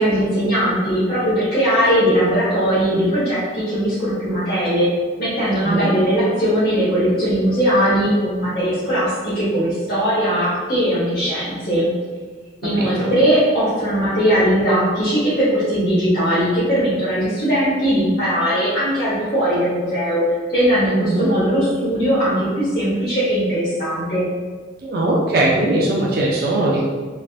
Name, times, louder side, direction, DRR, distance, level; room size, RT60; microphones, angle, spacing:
voice 1, 0.0-4.9 5.2-11.9 12.6-20.2 20.5-24.2, equal, 55° left, -11 dB, 0.9 m, -19 dB
voice 2, 12.6-13.1 21.0-21.3 24.8-26.8, right 2 dB, 55° right, -3 dB, 0.4 m, -20 dB
3.3 x 2.4 x 2.4 m, 1.5 s
head